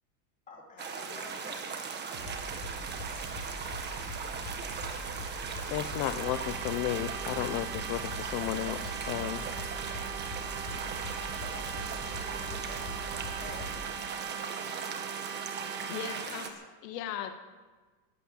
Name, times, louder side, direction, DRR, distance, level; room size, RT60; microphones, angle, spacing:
voice 1, 0.5-1.8 11.4-13.1 13.4-13.9, left 3 dB, 15° left, -2 dB, 3.1 m, -49 dB
sound 1, 0.8-16.5, right 5 dB, 20° right, 1.4 m, -39 dB
sound 2, 2.1-13.8, right 1 dB, 40° right, 6.5 m, -42 dB
voice 2, 5.7-9.4 10.3-10.4 10.7-10.9, left 14 dB, 35° left, 9 dB, 0.5 m, -34 dB
sound 3, 6.1-16.3, right 9 dB, 65° right, 1.7 m, -41 dB
voice 3, 15.8-17.4, left 9 dB, 75° left, 7 dB, 1.7 m, -38 dB
15.0 x 8.4 x 9.9 m, 1.3 s
supercardioid pair, 160°, 49 cm